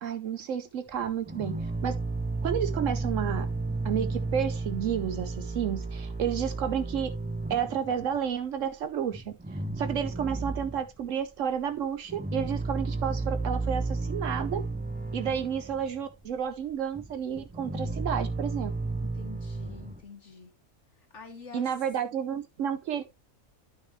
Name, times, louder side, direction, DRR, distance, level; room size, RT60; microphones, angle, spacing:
voice 1, 0.0-1.6 1.8-2.0 2.4-3.5 3.8-7.1 7.5-9.3 9.8-14.6 15.1-18.7 21.5-23.0, right 8 dB, 70° right, 1.0 m, -31 dB
sound 1, 0.9-8.3 8.6-8.7 9.1-11.0 11.5-20.0, right 3 dB, 10° right, 0.6 m, -33 dB
voice 2, 19.0-20.5 20.9-21.7, left 5 dB, 60° left, 1.6 m, -47 dB
9.5 x 6.3 x 3.2 m
omnidirectional pair, 1.4 m